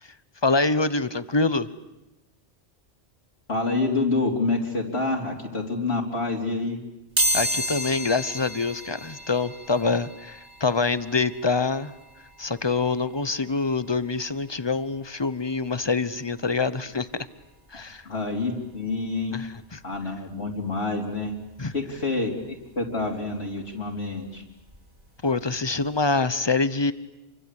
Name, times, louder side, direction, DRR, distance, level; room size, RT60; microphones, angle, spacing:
voice 1, 0.4-1.7 7.3-11.9 12.4-17.1 17.7-18.0 19.3-19.8 21.6-21.7 25.2-26.9, left 3 dB, 25° left, 14 dB, 1.0 m, -25 dB
voice 2, 3.5-6.8 18.1-19.4 19.8-21.3 21.7-24.4, left 3 dB, 70° left, -1 dB, 3.8 m, -27 dB
sound 1, 7.2-17.8 18.3-18.4 19.5-19.6 19.9-22.0 22.4-25.0 25.3-25.5 25.8-25.9, right 1 dB, 35° right, 4.9 m, -34 dB
28.0 x 24.5 x 8.4 m, 0.93 s
omnidirectional pair, 1.1 m